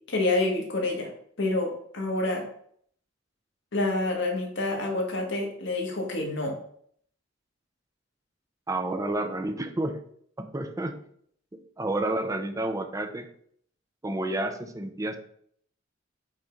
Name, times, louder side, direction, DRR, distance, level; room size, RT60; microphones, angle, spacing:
voice 1, 0.1-1.1 1.4-2.4 3.7-6.6, left 2 dB, 65° left, 1 dB, 1.5 m, -27 dB
voice 2, 8.7-10.0 10.4-11.0 11.5-13.3 14.0-15.2, right 1 dB, 15° right, 7 dB, 0.5 m, -30 dB
5.2 x 3.6 x 5.1 m, 0.64 s
head